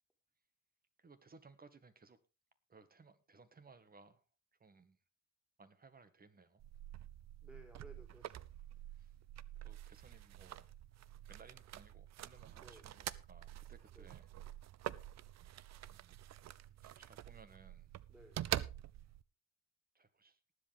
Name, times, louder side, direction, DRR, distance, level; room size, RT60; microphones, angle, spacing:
voice 1, 1.0-2.2 2.7-4.2 4.6-5.0 5.6-6.6 8.9-9.1 9.6-10.7 11.3-14.3 15.9-16.2 16.8-17.9 19.9-20.4, right 4 dB, 30° right, 1.7 m, -62 dB
sound 1, 6.6-19.2, right 12 dB, 60° right, 0.6 m, -47 dB
voice 2, 7.4-8.5 12.6-12.9 13.9-14.1 18.1-18.5, equal, 5° right, 3.9 m, -59 dB
19.0 x 8.0 x 3.5 m
cardioid pair, 90°, 30 cm